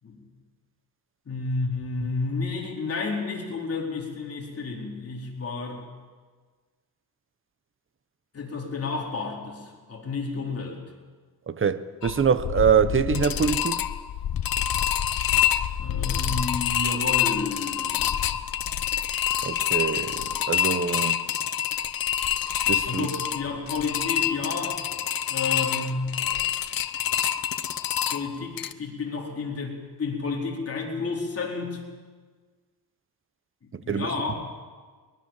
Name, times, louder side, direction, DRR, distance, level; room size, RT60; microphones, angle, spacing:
voice 1, 1.3-5.9 8.3-10.8 15.8-18.1 22.8-24.9 25.3-26.2 28.1-31.8 33.6-34.4, left 3 dB, 40° left, 4.4 m, -31 dB
voice 2, 11.5-13.8 19.4-21.2 22.7-23.1 33.7-34.1, right 7 dB, 35° right, 0.9 m, -24 dB
sound 1, 12.0-28.7, left 10 dB, 65° left, 1.0 m, -27 dB
23.0 x 21.0 x 7.5 m
wide cardioid pair, 155°, 37 cm